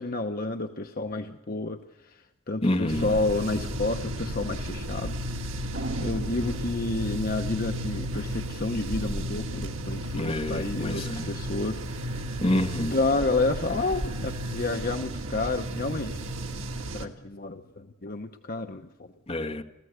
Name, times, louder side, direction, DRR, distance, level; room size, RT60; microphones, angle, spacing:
voice 1, 0.0-5.4 6.0-12.2 12.9-16.2 16.9-19.1, left 2 dB, 45° left, 0.9 m, -30 dB
voice 2, 2.6-3.1 10.2-11.3 12.4-13.0 19.3-19.6, left 1 dB, 30° left, 1.5 m, -27 dB
sound 1, 2.9-17.1, right 1 dB, 80° right, 2.0 m, -33 dB
28.0 x 15.0 x 8.1 m
head